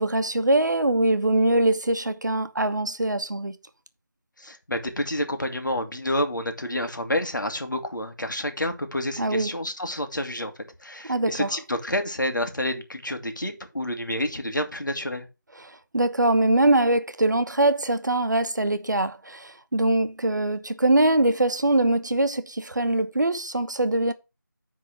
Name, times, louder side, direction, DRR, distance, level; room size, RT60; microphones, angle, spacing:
voice 1, 0.0-3.5 9.2-9.5 11.1-11.5 15.9-24.1, right 2 dB, 65° right, 1.1 m, -22 dB
voice 2, 4.4-10.5 10.8-15.3, left 1 dB, 70° left, 2.1 m, -29 dB
9.6 x 3.8 x 6.0 m
figure-of-eight pair, 170°, 11 cm